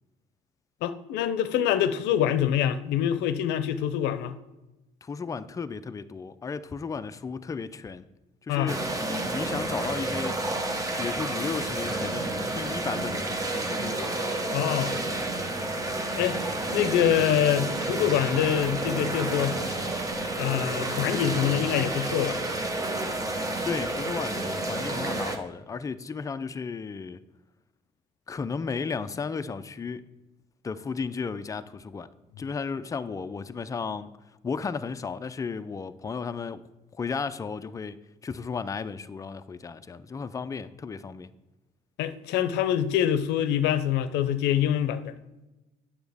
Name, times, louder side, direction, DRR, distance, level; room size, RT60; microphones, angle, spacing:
voice 1, 0.8-4.4 8.5-8.7 14.5-15.0 16.2-16.4 16.7-19.6 20.3-22.4 42.0-45.1, left 10 dB, 90° left, 0.5 m, -25 dB
voice 2, 5.0-8.1 8.5-8.8 9.2-10.4 11.0-14.4 23.6-27.2 28.3-30.1 30.6-32.1 32.4-34.1 34.4-36.7 36.9-41.3, left 5 dB, 20° left, 0.4 m, -34 dB
sound 1, 8.7-25.4, right 2 dB, 20° right, 0.9 m, -30 dB
9.2 x 7.1 x 3.4 m
cardioid pair, 110°, 17 cm